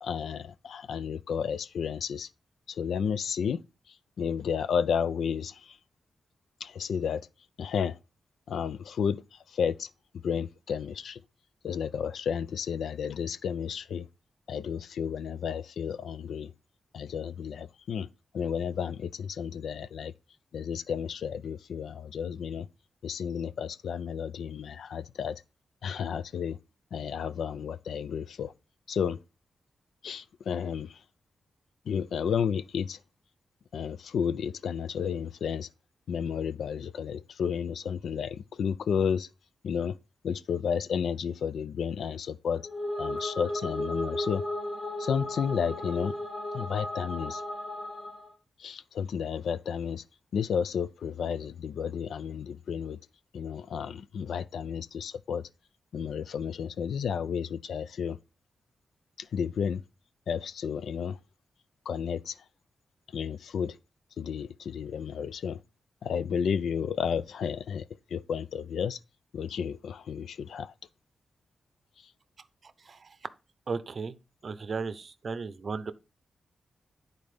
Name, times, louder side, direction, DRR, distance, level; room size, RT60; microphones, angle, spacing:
voice 1, 0.0-2.3 2.7-5.8 6.6-7.3 7.6-8.0 8.5-9.9 10.2-11.2 11.6-14.1 14.5-16.5 16.9-18.1 18.3-20.1 20.5-22.7 23.0-25.4 25.8-26.6 26.9-28.5 28.9-29.2 30.0-31.0 31.9-33.0 33.7-35.7 36.1-39.3 39.6-40.0 40.2-42.7 43.0-44.4 45.0-46.2 46.5-47.4 48.6-50.0 50.3-53.0 53.3-55.5 55.9-58.2 59.2-59.8 60.3-61.2 61.9-62.4 63.1-63.8 64.2-65.6 66.0-69.0 69.3-70.7, left 7 dB, 85° left, 0.4 m, -32 dB
sound 1, 42.6-48.3, left 1 dB, 35° left, 3.9 m, -35 dB
voice 2, 73.7-74.1 74.4-75.9, right 4 dB, 40° right, 0.6 m, -35 dB
10.5 x 4.0 x 5.0 m
wide cardioid pair, 160°, 0 cm